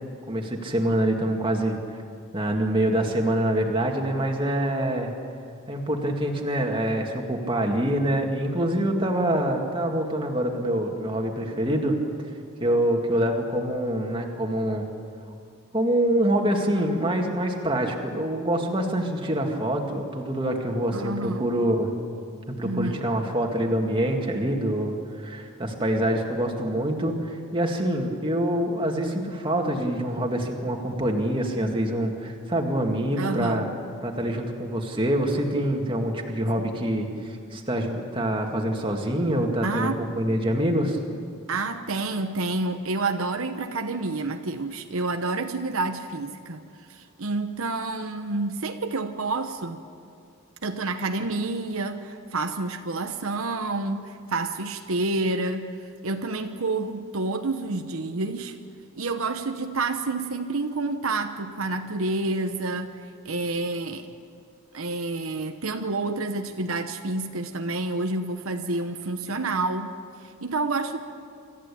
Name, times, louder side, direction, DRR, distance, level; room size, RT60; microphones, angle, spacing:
voice 1, 0.3-1.8 2.3-5.1 5.7-12.0 12.6-14.9 15.7-21.9 22.5-33.7 34.0-41.0, right 1 dB, 25° right, 2 dB, 2.1 m, -25 dB
voice 2, 20.9-21.5 22.6-23.0 33.2-33.7 39.6-40.1 41.5-46.6 46.9-49.8 50.6-55.7 56.0-58.6 59.0-64.1 64.7-69.9 70.2-71.0, right 3 dB, 75° right, 6 dB, 1.0 m, -29 dB
26.0 x 14.0 x 8.6 m, 2.3 s
head